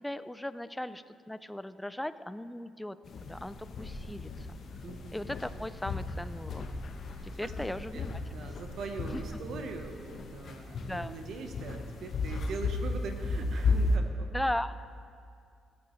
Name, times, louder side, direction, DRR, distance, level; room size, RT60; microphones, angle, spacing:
voice 1, 0.0-3.0 3.2-4.6 5.1-6.6 7.2-8.2 9.1-9.2 10.8-11.1 14.3-14.8, left 1 dB, 5° left, 13 dB, 0.4 m, -37 dB
sound 1, 3.0-14.0, left 3 dB, 60° left, 0.9 m, -35 dB
voice 2, 4.8-5.2 7.1-14.3, right 4 dB, 70° right, 5 dB, 1.0 m, -42 dB
16.0 x 8.5 x 3.2 m, 2.3 s
cardioid pair, 90°, 0 cm